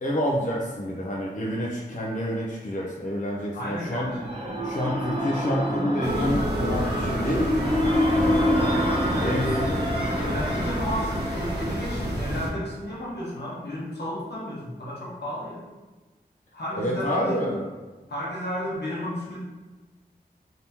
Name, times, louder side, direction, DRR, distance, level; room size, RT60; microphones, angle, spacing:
voice 1, 0.0-4.1 4.6-8.1 9.2-9.5 16.7-17.7, equal, 45° left, -3 dB, 0.5 m, -28 dB
voice 2, 3.5-4.3 8.5-9.8 10.1-15.6 16.5-17.5 18.1-19.4, equal, 85° left, -5 dB, 0.9 m, -32 dB
sound 1, 3.8-12.6, equal, 35° right, 0.9 m, -27 dB
sound 2, 6.0-12.5, right 1 dB, 80° right, 0.6 m, -31 dB
3.4 x 2.8 x 2.8 m, 1.2 s
wide cardioid pair, 65°, 17 cm